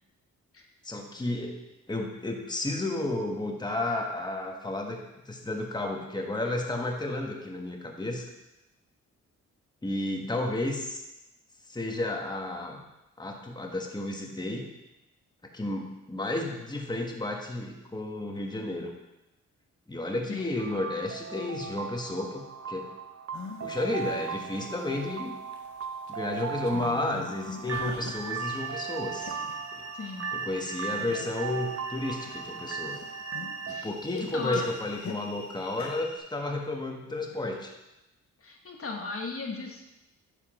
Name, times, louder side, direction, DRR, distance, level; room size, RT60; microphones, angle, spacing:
voice 1, 0.8-1.6 1.9-5.0 5.3-8.3 9.8-11.0 11.7-12.8 13.2-14.7 15.5-18.9 19.9-22.9 23.6-25.4 26.1-29.4 29.7-29.8 30.3-33.0 33.7-37.7, left 2 dB, 15° left, 1 dB, 1.3 m, -32 dB
sound 1, 20.6-33.8, right 6 dB, 50° right, 0.6 m, -37 dB
sound 2, 23.3-23.7 24.0-25.0 25.4-26.1 26.4-28.4 28.7-29.6 30.1-30.2 30.8-31.5 32.1-32.5 32.8-35.2 35.7-36.0, left 6 dB, 60° left, 1.1 m, -43 dB
sound 3, 28.4-36.2, left 2 dB, 85° left, 2.6 m, -46 dB
voice 2, 29.9-30.3 33.7-34.7 38.4-39.8, left 3 dB, 45° left, 1 dB, 1.3 m, -36 dB
10.0 x 3.6 x 5.9 m, 0.95 s
cardioid pair, 70°, 32 cm